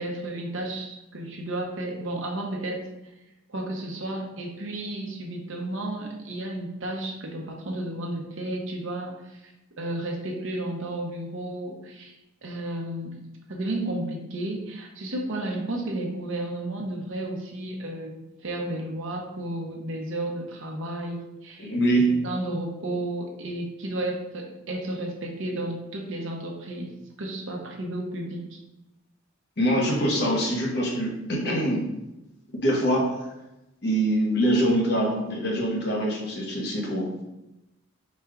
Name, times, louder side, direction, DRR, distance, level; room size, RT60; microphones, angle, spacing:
voice 1, 0.0-2.8 3.5-9.5 9.8-12.1 12.4-13.1 13.5-21.7 22.2-26.9 27.2-28.6, right 1 dB, 70° right, 1 dB, 0.7 m, -32 dB
voice 2, 21.6-22.1 29.6-31.8 32.5-33.2 33.8-37.1, right 1 dB, 55° left, -2 dB, 1.0 m, -24 dB
4.1 x 2.4 x 4.6 m, 0.95 s
head